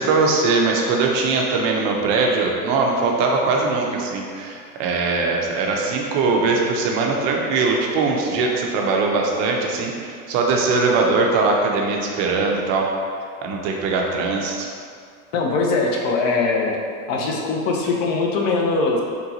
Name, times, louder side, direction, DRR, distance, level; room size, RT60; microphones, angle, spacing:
voice 1, 0.0-12.9 13.4-14.7, right 3 dB, 40° right, 0 dB, 0.5 m, -21 dB
voice 2, 15.3-16.8 17.1-19.0, left 3 dB, 60° left, 0 dB, 0.7 m, -21 dB
3.8 x 2.2 x 2.7 m, 2.2 s
supercardioid pair, 125°, 44 cm